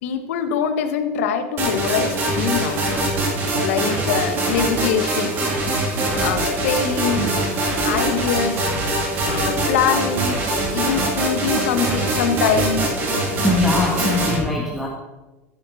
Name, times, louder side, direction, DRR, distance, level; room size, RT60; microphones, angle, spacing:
voice 1, 0.0-2.8 3.6-5.4 6.2-7.3 7.8-8.7 9.2-10.4 10.7-13.0, left 7 dB, 70° left, 8 dB, 1.3 m, -23 dB
sound 1, 1.6-14.4, right 1 dB, 25° right, 2.9 m, -23 dB
sound 2, 6.3-8.9 9.2-12.2 12.5-12.7, right 6 dB, 85° right, 2.1 m, -36 dB
voice 2, 13.4-14.9, left 2 dB, ahead, -3 dB, 1.4 m, -21 dB
15.0 x 9.6 x 4.2 m, 1.1 s
supercardioid pair, 175°, 8 cm